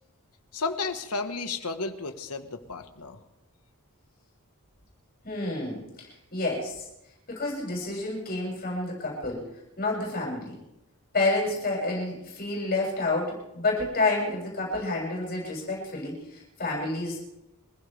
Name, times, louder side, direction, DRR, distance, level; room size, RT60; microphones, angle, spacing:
voice 1, 0.5-3.2, left 4 dB, 85° left, 7 dB, 1.4 m, -33 dB
voice 2, 5.2-6.8 7.3-9.5 9.8-10.6 11.1-17.2, left 2 dB, 45° left, -3 dB, 7.2 m, -29 dB
26.5 x 16.0 x 3.4 m, 0.88 s
head